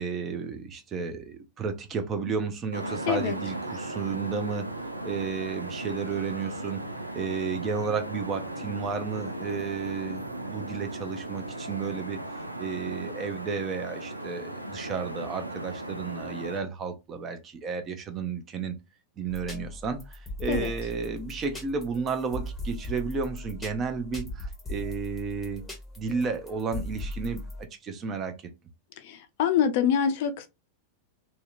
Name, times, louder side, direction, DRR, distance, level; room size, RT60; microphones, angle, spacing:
voice 1, 0.0-4.7 5.0-6.8 7.1-12.2 12.6-18.7 19.2-25.6 26.0-27.4 27.8-28.3, right 5 dB, 30° right, 0.5 m, -32 dB
sound 1, 2.7-16.6, right 1 dB, 85° right, 0.3 m, -37 dB
sound 2, 19.3-27.6, left 1 dB, 10° left, 0.8 m, -39 dB
voice 2, 29.0-30.5, left 8 dB, 50° left, 0.4 m, -25 dB
2.7 x 2.1 x 2.4 m
figure-of-eight pair, 90°, 0 cm